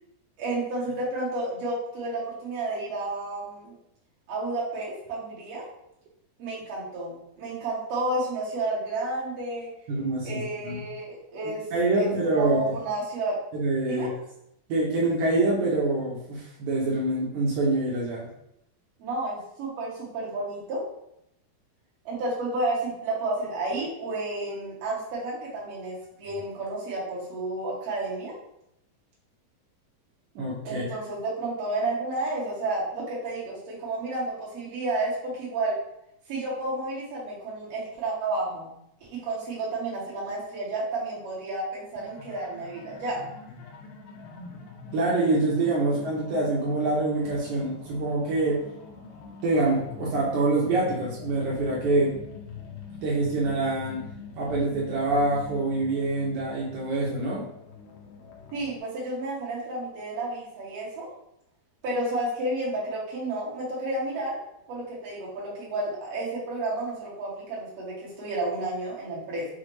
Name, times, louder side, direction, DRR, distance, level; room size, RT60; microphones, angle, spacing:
voice 1, 0.4-3.7 4.3-5.6 6.4-9.7 10.2-11.6 11.9-12.1 12.4-13.4 13.9-14.1 19.0-20.8 22.0-28.3 30.6-35.7 36.3-38.7 39.1-43.3 58.5-61.1 61.8-64.4 64.7-69.5, right 2 dB, 60° right, -6 dB, 1.7 m, -31 dB
voice 2, 9.9-10.8 11.7-12.7 13.5-14.1 14.7-18.3 30.3-30.9 44.9-48.6 49.4-52.2 53.0-54.0 54.3-57.4, right 2 dB, 85° right, -5 dB, 1.6 m, -25 dB
sound 1, 41.9-58.8, left 5 dB, 80° left, 2.2 m, -44 dB
6.2 x 2.1 x 3.0 m, 0.79 s
omnidirectional pair, 4.3 m